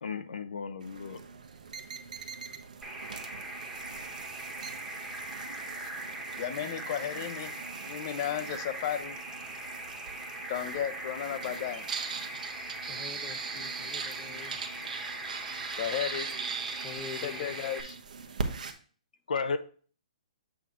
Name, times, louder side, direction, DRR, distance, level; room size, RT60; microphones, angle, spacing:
voice 1, 0.0-1.2 19.3-19.6, left 5 dB, 85° left, 0.8 m, -33 dB
sound 1, 0.8-18.7, right 5 dB, 75° right, 1.0 m, -41 dB
sound 2, 2.8-17.8, right 2 dB, 5° right, 1.3 m, -41 dB
voice 2, 6.4-7.5 7.9-9.2 10.5-11.9 15.8-16.3 17.2-18.0, left 10 dB, 35° left, 0.7 m, -34 dB
voice 3, 12.9-14.6 16.8-17.5, left 9 dB, 15° left, 0.3 m, -45 dB
7.2 x 4.5 x 3.7 m
hypercardioid pair, 160°, 4 cm